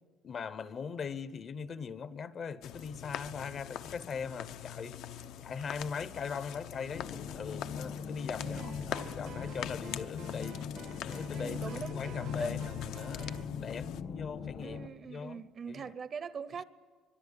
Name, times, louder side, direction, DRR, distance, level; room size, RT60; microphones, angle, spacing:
voice 1, 0.2-5.0 5.4-10.6 11.1-11.6 11.9-13.3 13.6-14.8 15.0-15.9, left 6 dB, 35° left, 0.7 m, -40 dB
sound 1, 2.6-14.0, left 11 dB, 75° left, 0.8 m, -43 dB
sound 2, 6.9-14.9, left 6 dB, 55° left, 1.3 m, -40 dB
voice 2, 8.4-8.8 11.4-12.5 14.6-16.6, right 6 dB, 35° right, 0.7 m, -42 dB
sound 3, 8.6-13.5, right 10 dB, 60° right, 0.9 m, -51 dB
24.5 x 23.0 x 9.8 m
cardioid pair, 175°, 0 cm